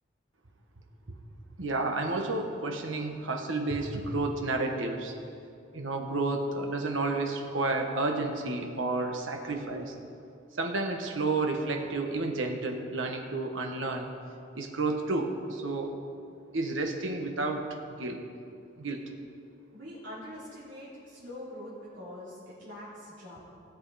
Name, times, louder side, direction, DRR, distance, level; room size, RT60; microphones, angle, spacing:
voice 1, 1.6-5.1 5.7-9.9 10.6-14.1 14.5-15.9 16.5-17.7 17.9-18.2 18.8-19.0, right 2 dB, 90° right, 3 dB, 1.3 m, -31 dB
voice 2, 19.7-23.4, left 1 dB, 70° right, -10 dB, 3.3 m, -44 dB
17.0 x 8.2 x 4.2 m, 2.4 s
head